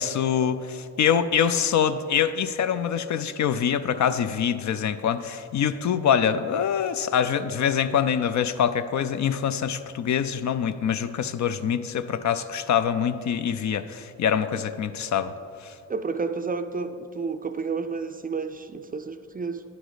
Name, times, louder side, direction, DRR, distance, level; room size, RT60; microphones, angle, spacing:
voice 1, 0.0-15.3 15.6-15.7, left 8 dB, 55° left, 11 dB, 0.5 m, -25 dB
voice 2, 15.9-19.6, right 4 dB, 25° right, 9 dB, 0.4 m, -31 dB
10.5 x 4.9 x 3.9 m, 2.5 s
supercardioid pair, 55°, 34 cm